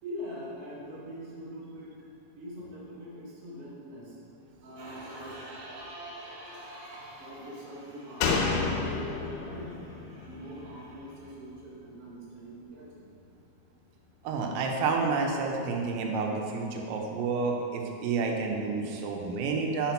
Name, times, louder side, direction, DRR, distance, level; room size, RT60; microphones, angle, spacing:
voice 1, 0.0-2.0 2.3-13.0, equal, 55° right, -8 dB, 1.6 m, -43 dB
Slam, 8.2-11.7 12.0-12.1, left 4 dB, 80° left, 3.3 m, -31 dB
voice 2, 14.3-19.9, right 4 dB, 85° right, 1 dB, 3.5 m, -29 dB
6.6 x 5.9 x 5.7 m, 2.6 s
omnidirectional pair, 5.8 m